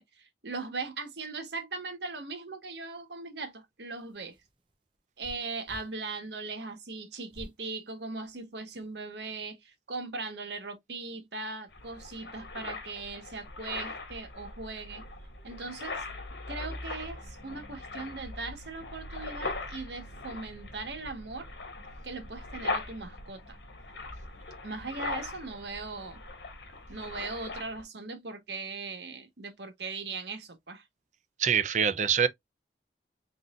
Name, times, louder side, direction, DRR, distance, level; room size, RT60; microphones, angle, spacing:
voice 1, 0.0-4.4 5.2-15.1 15.4-16.0 16.5-21.5 22.0-23.6 24.6-26.2 26.9-30.8, right 3 dB, 75° right, 1.2 m, -39 dB
sound 1, 4.0-5.9 7.3-7.6 8.2-8.9, equal, 25° right, 0.8 m, -49 dB
sound 2, 11.7-27.8, left 3 dB, 85° left, 1.9 m, -40 dB
voice 2, 31.4-32.3, right 7 dB, 40° right, 0.5 m, -24 dB
3.9 x 3.9 x 2.4 m
head